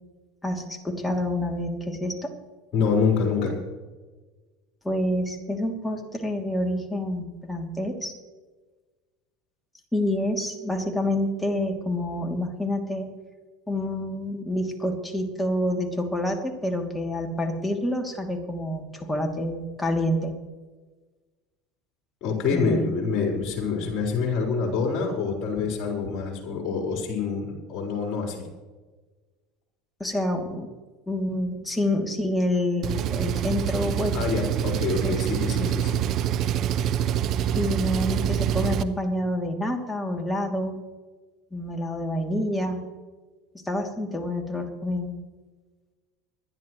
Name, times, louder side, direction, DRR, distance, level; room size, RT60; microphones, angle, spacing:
voice 1, 0.4-2.3 4.8-8.2 9.9-13.1 13.7-20.4 22.5-22.9 30.0-30.7 31.1-34.3 35.0-35.3 35.6-35.7 37.5-40.8 41.5-42.8 43.6-45.1, left 1 dB, 10° left, 3 dB, 2.7 m, -28 dB
voice 2, 2.7-3.6 22.2-28.5 34.1-36.0, left 5 dB, 50° left, -1 dB, 4.1 m, -26 dB
Engine, 32.8-38.8, right 10 dB, 50° right, 0.9 m, -26 dB
25.0 x 10.5 x 3.1 m, 1.3 s
hypercardioid pair, 80°, 0 cm